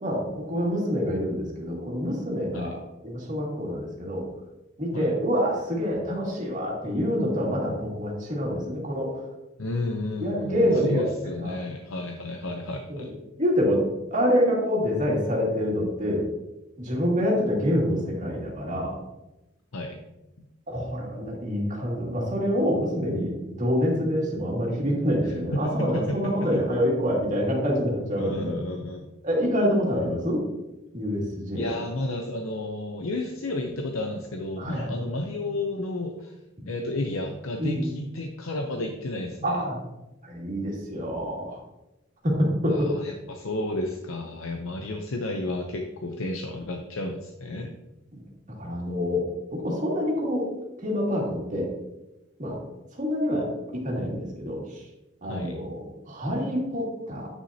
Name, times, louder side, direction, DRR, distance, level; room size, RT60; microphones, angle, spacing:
voice 1, 0.0-2.8 3.0-4.3 4.8-9.1 10.2-11.0 11.4-11.6 12.9-13.1 13.4-13.8 14.1-16.2 16.8-18.9 20.7-28.6 29.2-30.4 30.9-31.7 34.6-34.9 37.6-37.9 39.4-39.8 40.3-41.6 42.2-42.9 48.1-48.2 48.6-49.2 49.5-50.5 50.8-51.7 52.4-52.5 52.9-53.5 53.7-54.6 55.2-57.3, equal, 40° right, -3 dB, 2.2 m, -26 dB
voice 2, 9.6-13.1 19.7-20.0 25.2-26.6 28.2-29.1 31.5-36.3 36.7-39.5 42.7-47.7 55.3-55.5, left 2 dB, 90° left, 3 dB, 0.7 m, -32 dB
9.4 x 6.2 x 2.8 m, 0.97 s
head